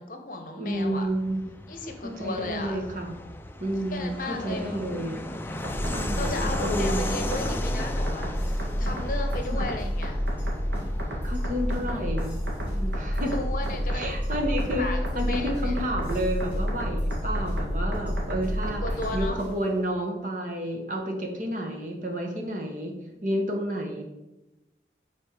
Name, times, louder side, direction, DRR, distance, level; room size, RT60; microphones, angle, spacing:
voice 1, 0.0-1.1 1.7-2.8 3.9-4.8 5.4-5.7 6.1-10.2 13.1-14.1 14.8-15.7 18.8-19.4, left 2 dB, 50° left, 5 dB, 0.9 m, -35 dB
voice 2, 0.6-1.4 2.0-3.2 3.6-5.2 5.9-7.1 9.5-9.7 11.2-12.4 12.8-13.3 13.9-22.9 23.2-24.0, equal, 45° right, 2 dB, 1.2 m, -30 dB
Fixed-wing aircraft airplane, 0.7-16.9, left 1 dB, 10° left, 0.4 m, -38 dB
sound 1, 5.6-19.3, equal, 90° right, 1.7 m, -29 dB
sound 2, 8.3-19.9, equal, 10° right, 1.9 m, -44 dB
7.7 x 4.2 x 4.9 m, 0.95 s
head